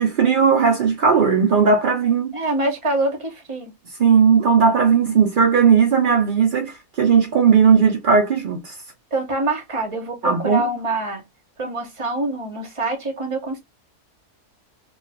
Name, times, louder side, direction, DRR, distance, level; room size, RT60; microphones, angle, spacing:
voice 1, 0.0-2.4 4.0-8.7 10.2-10.7, right 6 dB, 70° right, 0.5 m, -17 dB
voice 2, 2.3-3.7 9.1-11.2 11.6-13.6, right 2 dB, 25° right, 0.8 m, -25 dB
2.6 x 2.3 x 3.3 m
omnidirectional pair, 1.7 m